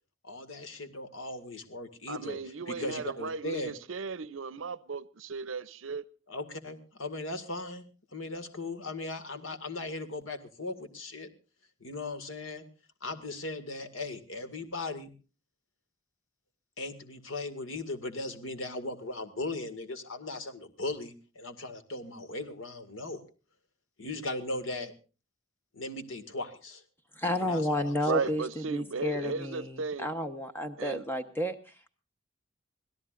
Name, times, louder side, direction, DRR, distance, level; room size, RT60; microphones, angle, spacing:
voice 1, 0.2-2.4 2.7-3.7 6.3-7.8 8.1-11.3 11.8-12.6 13.0-15.1 16.8-23.2 24.0-24.9 25.7-26.8 27.4-28.3, left 2 dB, 85° left, 2.0 m, -38 dB
voice 2, 2.1-6.0 28.1-30.1 30.8-31.0, right 4 dB, 70° right, 0.7 m, -35 dB
voice 3, 27.2-31.9, left 1 dB, 10° left, 1.1 m, -31 dB
25.5 x 17.0 x 2.5 m
head